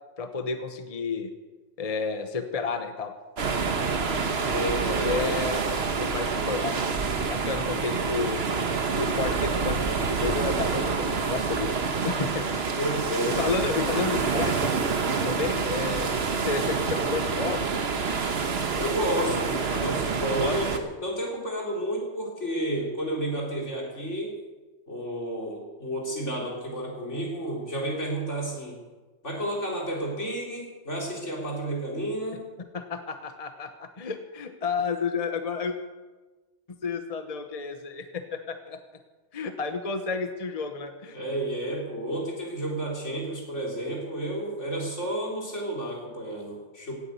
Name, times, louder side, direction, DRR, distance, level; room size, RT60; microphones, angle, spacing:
voice 1, 0.2-1.3 1.8-3.1 4.8-6.7 7.2-8.4 9.0-11.7 12.0-12.6 13.3-14.7 15.2-17.6 20.4-20.6 32.7-35.7 36.7-38.8 39.3-41.2, left 5 dB, 30° left, 7 dB, 1.0 m, -31 dB
sound 1, 3.4-20.8, right 5 dB, 55° right, 1.4 m, -27 dB
voice 2, 4.5-5.2 12.8-13.7 18.8-24.3 24.9-28.8 29.2-32.4 41.1-46.9, right 1 dB, 70° left, -2 dB, 4.4 m, -31 dB
17.0 x 9.8 x 8.3 m, 1.2 s
omnidirectional pair, 1.3 m